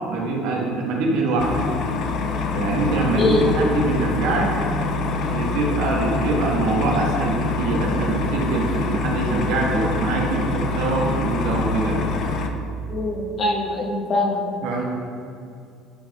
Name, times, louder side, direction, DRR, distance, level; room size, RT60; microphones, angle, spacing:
voice 1, 0.1-1.6 2.5-4.6 5.2-12.0 14.6-14.8, right 3 dB, 80° right, -1 dB, 1.3 m, -23 dB
sound 1, 1.4-12.5, left 3 dB, 55° left, 0.5 m, -25 dB
voice 2, 12.9-14.5, left 2 dB, 35° left, -1 dB, 1.0 m, -22 dB
11.0 x 4.4 x 2.3 m, 2.4 s
cardioid pair, 145°, 0 cm